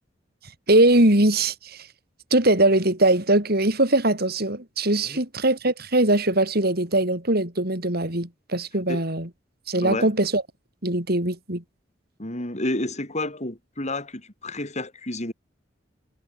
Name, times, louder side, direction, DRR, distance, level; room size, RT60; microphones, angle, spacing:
voice 1, 0.7-1.9 2.3-9.3 9.7-10.4 10.8-11.6, right 1 dB, 55° right, 6.0 m, -21 dB
voice 2, 12.2-15.3, left 1 dB, 40° left, 5.3 m, -30 dB
head